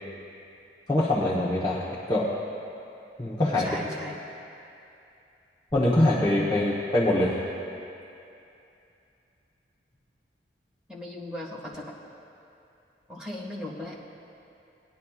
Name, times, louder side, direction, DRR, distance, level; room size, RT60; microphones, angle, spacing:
voice 1, 0.9-2.3 3.2-3.8 5.7-7.3, left 1 dB, 20° left, -8 dB, 1.0 m, -24 dB
voice 2, 3.6-4.1 10.9-11.9 13.1-14.1, left 1 dB, 5° right, -7 dB, 1.6 m, -38 dB
18.0 x 10.5 x 2.4 m, 2.7 s
head